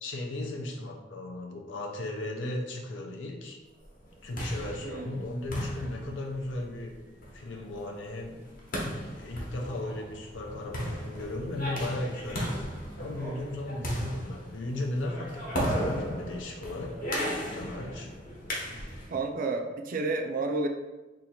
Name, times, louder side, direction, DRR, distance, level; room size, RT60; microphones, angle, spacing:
voice 1, 0.0-3.6 4.2-6.9 7.3-8.4 9.0-12.6 13.0-18.1, left 2 dB, 90° left, 1 dB, 0.6 m, -36 dB
sound 1, 4.0-19.2, equal, 50° left, 0.9 m, -36 dB
voice 2, 4.8-5.2 19.1-20.7, right 3 dB, 50° right, 3 dB, 0.4 m, -31 dB
2.7 x 2.5 x 4.2 m, 1.1 s
head